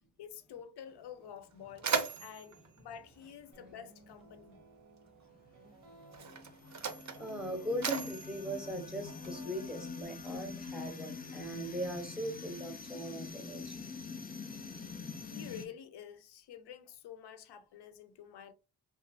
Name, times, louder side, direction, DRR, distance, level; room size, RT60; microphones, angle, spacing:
voice 1, 0.2-1.9 2.2-4.6 15.3-18.5, left 8 dB, 70° left, 0.6 m, -49 dB
Mechanisms, 0.9-1.0 1.3-4.1 5.1-5.2 6.0-9.6, right 5 dB, 45° right, 0.6 m, -39 dB
sound 1, 3.5-10.6, right 3 dB, 85° right, 1.0 m, -59 dB
sound 2, 5.8-15.7, left 4 dB, 25° left, 0.3 m, -45 dB
voice 2, 7.2-13.8, right 1 dB, ahead, 0.7 m, -39 dB
2.9 x 2.4 x 2.6 m
wide cardioid pair, 100°, 42 cm